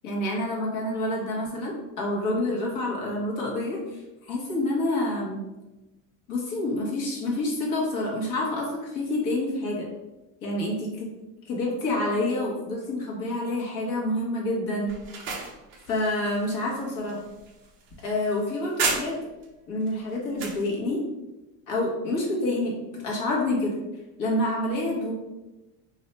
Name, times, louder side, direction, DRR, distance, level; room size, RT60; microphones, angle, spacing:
voice 1, 0.0-5.4 6.3-9.9 10.4-11.1 11.4-14.9 15.9-17.2 18.0-19.1 19.7-21.0 21.7-22.7 23.0-23.8 24.2-25.1, left 1 dB, 50° left, -3 dB, 1.1 m, -28 dB
sound 1, 14.9-19.4 19.9-20.6, right 4 dB, 30° right, 0.5 m, -33 dB
2.6 x 2.2 x 4.0 m, 1.0 s
supercardioid pair, 145°, 40 cm